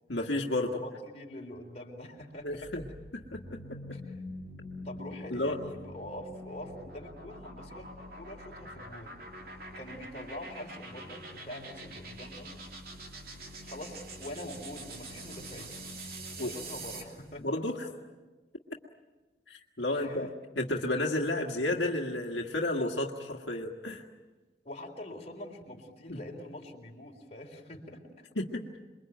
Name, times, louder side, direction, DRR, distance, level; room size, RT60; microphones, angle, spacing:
voice 1, 0.1-0.8 2.4-2.9 3.3-4.0 5.3-5.6 16.4-16.5 17.4-17.9 19.5-24.0 26.1-26.2 28.3-28.6, left 1 dB, 80° left, 1 dB, 1.7 m, -32 dB
voice 2, 0.7-2.7 3.9-4.2 4.8-9.2 9.7-12.5 13.6-15.8 16.4-17.5 19.9-20.3 24.6-28.3, left 1 dB, 35° left, 0 dB, 3.8 m, -45 dB
sound 1, 2.4-17.2, right 1 dB, 55° right, 3.2 m, -45 dB
28.0 x 22.5 x 9.2 m, 1.2 s
head